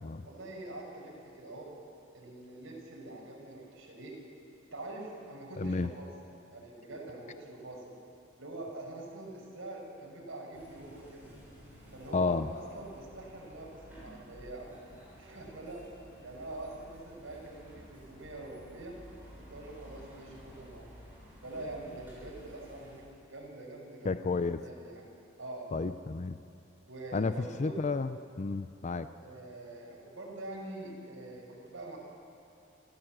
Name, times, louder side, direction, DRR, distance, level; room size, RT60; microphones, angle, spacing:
voice 1, 0.2-1.7 2.1-4.2 4.7-6.1 6.5-7.9 8.3-11.3 11.9-14.7 15.2-15.9 16.2-19.0 19.5-20.9 21.4-25.7 26.8-27.8 29.2-32.0, right 2 dB, 75° right, -2 dB, 5.7 m, -45 dB
voice 2, 5.6-5.9 12.1-12.5 24.0-24.6 25.7-26.4 27.1-27.3 27.6-29.1, left 3 dB, 35° left, 11 dB, 0.5 m, -31 dB
sound 1, 10.5-23.0, equal, 10° right, 7.3 m, -53 dB
28.0 x 14.0 x 7.5 m, 2.6 s
head